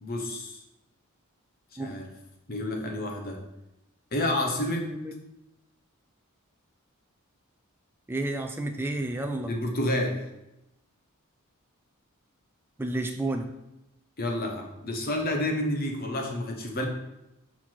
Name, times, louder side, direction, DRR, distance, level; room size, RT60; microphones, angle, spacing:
voice 1, 0.0-0.6 1.8-2.1 2.5-3.4 4.1-4.9 9.5-10.2 14.2-16.9, left 1 dB, 40° left, 2 dB, 1.0 m, -29 dB
voice 2, 8.1-9.5 12.8-13.5, right 2 dB, 10° right, 4 dB, 0.3 m, -31 dB
6.0 x 4.3 x 4.4 m, 0.93 s
head